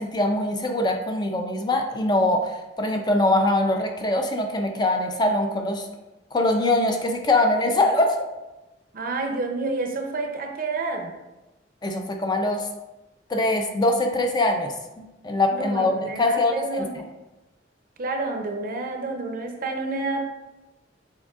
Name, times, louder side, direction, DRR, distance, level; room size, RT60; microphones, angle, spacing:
voice 1, 0.0-5.9 6.3-8.2 11.8-12.7 13.3-16.9, left 2 dB, 25° left, 4 dB, 0.4 m, -23 dB
voice 2, 8.9-11.1 15.5-17.1 18.0-20.3, right 3 dB, 50° right, 4 dB, 0.6 m, -29 dB
6.5 x 3.4 x 2.4 m, 1.0 s
head